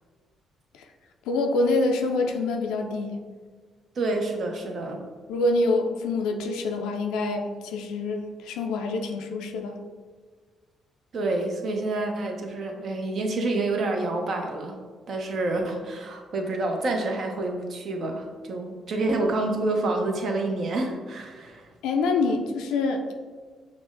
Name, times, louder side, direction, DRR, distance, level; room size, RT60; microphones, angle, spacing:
voice 1, 1.3-3.2 5.3-9.8 21.8-23.1, left 3 dB, 75° left, 3 dB, 0.3 m, -26 dB
voice 2, 4.0-5.0 11.1-14.7 15.1-21.7, right 2 dB, 60° right, 3 dB, 0.6 m, -28 dB
6.0 x 2.0 x 2.5 m, 1.5 s
hypercardioid pair, 45°, 0 cm